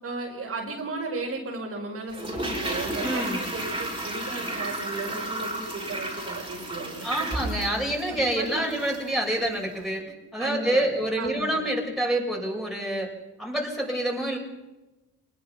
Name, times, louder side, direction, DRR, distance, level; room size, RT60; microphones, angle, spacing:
voice 1, 0.0-7.1 7.6-7.7 8.1-8.8 10.4-10.9 11.2-11.6, right 3 dB, 50° right, 0 dB, 5.2 m, -35 dB
Toilet flush, 2.1-9.2 9.4-9.5, right 1 dB, 15° right, 5.5 m, -33 dB
voice 2, 3.0-3.4 7.0-10.0 10.3-13.1 13.4-14.4, right 1 dB, ahead, -2 dB, 6.5 m, -27 dB
25.0 x 20.5 x 5.8 m, 1.1 s
cardioid pair, 90°, 30 cm